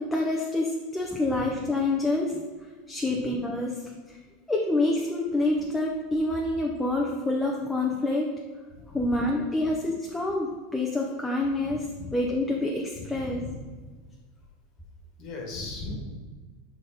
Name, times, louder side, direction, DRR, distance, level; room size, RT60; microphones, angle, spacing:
voice 1, 0.0-2.4 2.9-4.2 4.5-8.3 8.9-11.8 12.1-13.4, left 2 dB, 10° left, -1 dB, 0.7 m, -27 dB
voice 2, 8.7-9.2 9.6-9.7 11.6-12.1 12.9-13.6 15.2-15.9, left 3 dB, 50° left, 0 dB, 1.4 m, -39 dB
5.6 x 4.0 x 5.0 m, 1.4 s
supercardioid pair, 130°, 0 cm